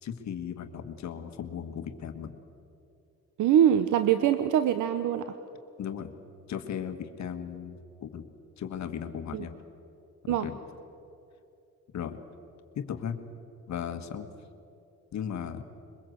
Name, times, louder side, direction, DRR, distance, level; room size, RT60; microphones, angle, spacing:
voice 1, 0.0-2.3 5.8-6.1 6.5-8.3 8.6-9.5 10.2-10.6 11.9-12.2 12.7-13.2 13.7-14.3 15.1-15.6, left 8 dB, 65° left, 8 dB, 1.7 m, -36 dB
voice 2, 3.4-5.3 9.3-9.4 10.3-10.5, right 10 dB, 75° right, 11 dB, 0.9 m, -23 dB
23.0 x 21.5 x 7.9 m, 2.7 s
cardioid pair, 90°, 30 cm